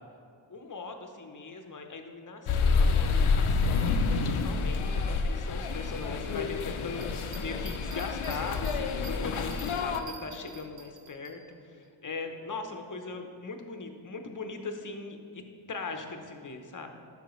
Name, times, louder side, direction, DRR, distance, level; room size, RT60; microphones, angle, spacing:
voice 1, 0.5-9.5 9.8-11.4 11.7-16.9, left 3 dB, 40° left, 5 dB, 0.8 m, -40 dB
sound 1, 2.5-10.0, left 4 dB, 80° left, 0.6 m, -28 dB
sound 2, 6.9-11.3, right 5 dB, 60° right, 1.2 m, -49 dB
12.0 x 5.4 x 3.1 m, 2.4 s
wide cardioid pair, 65°, 49 cm